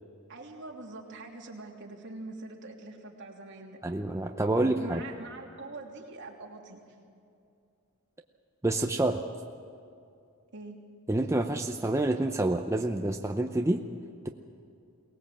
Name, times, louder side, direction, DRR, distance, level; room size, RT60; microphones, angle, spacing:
voice 1, 0.3-3.8 4.5-6.8 10.5-10.8, right 2 dB, 60° right, -1 dB, 3.0 m, -44 dB
voice 2, 3.8-5.0 8.6-9.2 11.1-13.8, right 2 dB, 15° right, 4 dB, 0.6 m, -27 dB
23.0 x 19.0 x 7.4 m, 2.5 s
head